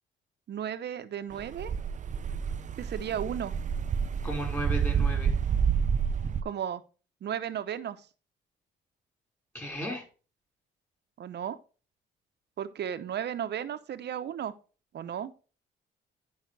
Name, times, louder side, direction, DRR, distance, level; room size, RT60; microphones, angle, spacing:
voice 1, 0.5-1.7 2.8-3.5 6.4-6.8 7.2-8.0 11.2-11.6 12.6-14.5 14.9-15.4, right 9 dB, 60° right, 11 dB, 0.9 m, -34 dB
sound 1, 1.4-6.4, right 7 dB, 40° right, 0.5 m, -29 dB
voice 2, 4.2-5.3 9.5-10.0, equal, 10° left, 0 dB, 4.9 m, -34 dB
10.5 x 5.6 x 3.3 m, 0.35 s
cardioid pair, 90°, 20 cm